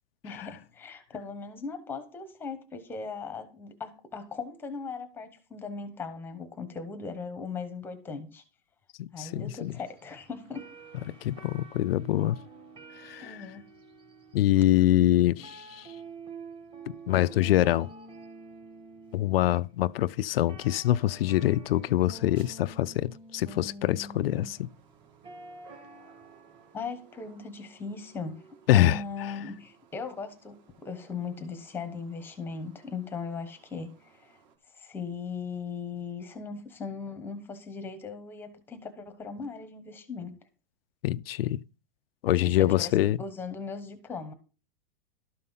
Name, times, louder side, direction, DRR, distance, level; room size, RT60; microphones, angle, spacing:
voice 1, 0.2-8.4 9.1-10.6 13.2-13.6 15.4-15.5 26.7-28.4 28.7-34.4 34.7-40.3 42.3-42.9 43.2-44.3, left 5 dB, 5° left, 1.0 m, -38 dB
voice 2, 9.0-9.7 11.2-12.4 13.0-13.4 14.3-15.9 16.9-17.9 19.1-24.7 28.7-29.0 41.0-41.6 42.2-43.2, left 14 dB, 70° left, 0.5 m, -25 dB
sound 1, 9.3-26.7, right 3 dB, 15° right, 1.5 m, -48 dB
sound 2, 24.1-34.6, right 7 dB, 45° right, 2.5 m, -60 dB
12.5 x 5.5 x 5.5 m
supercardioid pair, 170°, 30 cm